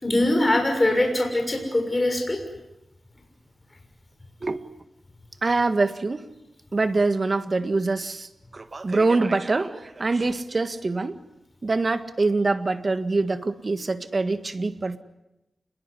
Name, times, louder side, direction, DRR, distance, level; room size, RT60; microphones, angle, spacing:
voice 1, 0.0-2.4, left 1 dB, 25° left, 3 dB, 6.5 m, -22 dB
voice 2, 5.4-6.2 6.7-8.3 8.5-11.2 11.6-15.0, right 3 dB, 40° right, 11 dB, 1.7 m, -24 dB
28.0 x 21.5 x 9.9 m, 0.93 s
wide cardioid pair, 95°, 0 cm